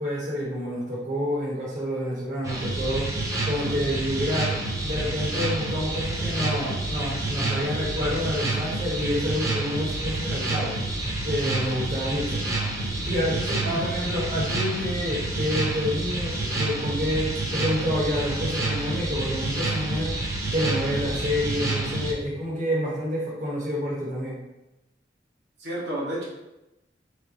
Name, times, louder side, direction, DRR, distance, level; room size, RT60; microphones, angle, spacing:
voice 1, 0.0-3.1 3.4-10.8 11.2-12.4 13.0-20.2 20.5-24.4, equal, 45° right, -5 dB, 1.1 m, -28 dB
sound 1, 2.4-22.1, right 2 dB, 20° right, 0.7 m, -28 dB
voice 2, 25.6-26.2, right 1 dB, 80° right, -6 dB, 1.3 m, -30 dB
3.4 x 3.3 x 4.1 m, 0.96 s
head